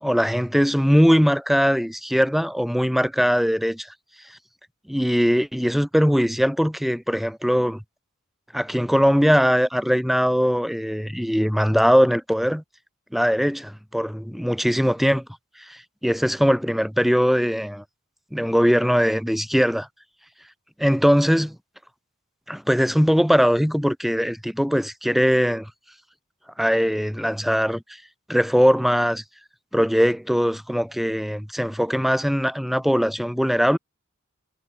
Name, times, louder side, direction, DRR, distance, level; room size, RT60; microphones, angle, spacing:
voice 1, 0.0-3.9 4.9-7.8 8.5-12.6 13.1-15.3 15.7-17.8 18.3-19.9 20.8-21.6 22.5-25.7 26.6-27.8 28.3-29.2 29.7-33.8, equal, ahead, 3.5 m, -20 dB
head